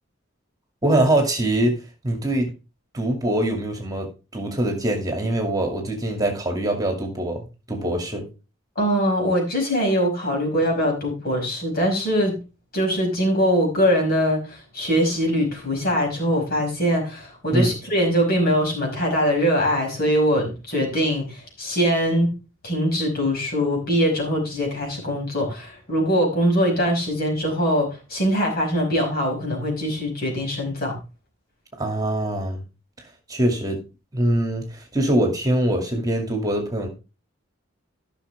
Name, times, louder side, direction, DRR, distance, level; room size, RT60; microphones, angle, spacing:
voice 1, 0.8-1.8 2.0-2.5 2.9-4.1 4.3-8.3 17.5-17.7 31.8-32.6 33.3-33.8 34.1-34.6 34.9-36.9, right 1 dB, 20° right, 3 dB, 2.3 m, -23 dB
voice 2, 8.8-12.4 12.7-22.3 22.6-31.0, equal, 50° left, 1 dB, 5.3 m, -22 dB
14.5 x 6.2 x 3.4 m, 0.31 s
head